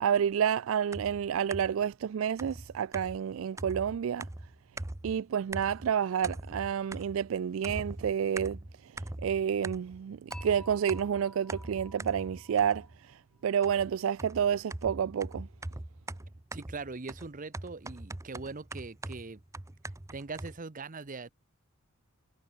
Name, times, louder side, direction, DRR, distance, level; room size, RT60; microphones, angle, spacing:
voice 1, 0.0-4.3 5.0-15.5, right 8 dB, 70° right, 0.3 m, -30 dB
sound 1, 0.9-1.9 2.4-5.2 5.5-6.0 6.2-7.3 7.6-10.0 10.3-13.0 13.6-20.6, right 2 dB, 15° right, 0.6 m, -42 dB
Dishes pots and pans / Chink clink, 10.3-13.5, left 1 dB, 5° left, 5.1 m, -53 dB
voice 2, 16.5-19.4 20.1-21.3, right 3 dB, 40° right, 0.9 m, -41 dB
head